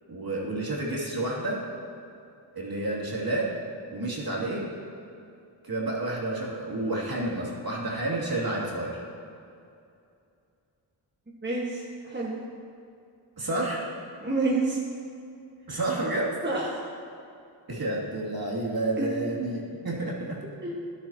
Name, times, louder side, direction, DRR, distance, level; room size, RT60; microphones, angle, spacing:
voice 1, 0.1-1.6 2.5-3.5 3.9-4.7 5.6-9.0 13.4-13.9 15.7-16.3 17.7-20.4, right 2 dB, 50° right, -4 dB, 2.7 m, -30 dB
voice 2, 11.4-12.5 14.2-14.8 16.4-16.7 19.0-19.1 20.6-20.8, right 2 dB, 20° right, -4 dB, 1.6 m, -28 dB
13.5 x 11.0 x 2.9 m, 2.5 s
cardioid pair, 50°, 46 cm